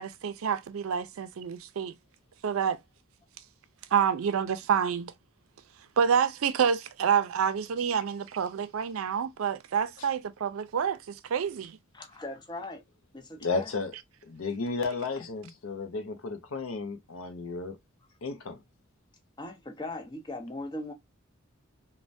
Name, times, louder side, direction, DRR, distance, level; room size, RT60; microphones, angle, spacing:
voice 1, 0.0-1.9 2.4-2.8 3.9-5.1 6.0-11.8, right 7 dB, 85° right, 0.4 m, -28 dB
voice 2, 11.9-12.8 13.1-13.7 19.4-20.9, left 2 dB, 20° left, 0.6 m, -39 dB
voice 3, 13.4-13.9 14.2-17.8 18.2-18.6, left 4 dB, 80° left, 0.6 m, -33 dB
3.2 x 2.1 x 2.5 m
head